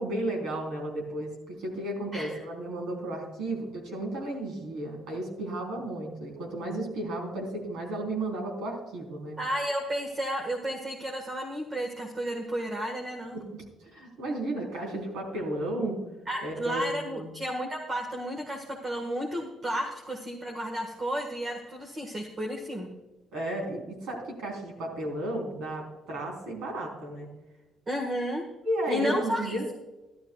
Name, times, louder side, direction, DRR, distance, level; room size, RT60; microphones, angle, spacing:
voice 1, 0.0-9.4 13.3-16.0 16.4-17.3 23.3-27.3 28.6-29.7, right 1 dB, 80° right, 0 dB, 3.9 m, -33 dB
voice 2, 9.4-13.4 16.3-22.9 27.9-28.5 28.9-29.6, equal, 25° right, 1 dB, 1.6 m, -32 dB
13.0 x 12.5 x 2.4 m, 1.1 s
cardioid pair, 125°, 0 cm